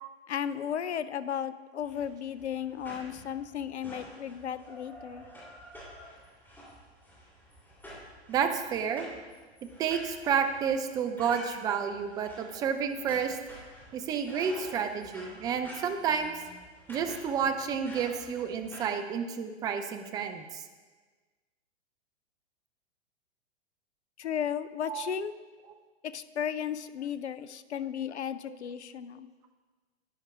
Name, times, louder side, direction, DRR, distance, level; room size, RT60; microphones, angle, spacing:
voice 1, 0.3-5.3 24.2-25.3 26.0-29.3, left 8 dB, 80° left, 14 dB, 0.5 m, -34 dB
sound 1, 1.8-18.9, equal, 5° left, 3.0 m, -49 dB
voice 2, 8.3-9.1 9.8-13.4 13.9-16.4 16.9-20.6 24.9-25.0 28.5-28.6, right 7 dB, 10° right, 7 dB, 0.3 m, -30 dB
12.0 x 9.6 x 2.4 m, 1.4 s
figure-of-eight pair, 105°, 33 cm